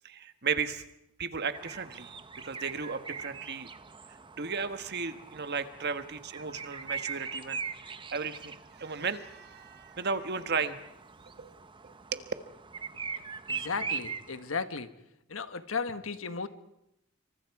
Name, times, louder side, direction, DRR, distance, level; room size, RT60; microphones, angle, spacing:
voice 1, 0.0-0.8 1.2-2.1 2.4-3.7 4.4-7.6 8.1-10.8 11.4-11.5 11.8-12.3, right 5 dB, 55° right, 10 dB, 1.4 m, -34 dB
sound 1, 1.5-14.6, right 5 dB, 25° right, 0.8 m, -42 dB
voice 2, 13.5-14.9 15.3-16.5, left 5 dB, 80° left, 10 dB, 1.4 m, -35 dB
27.0 x 24.5 x 4.8 m, 0.81 s
head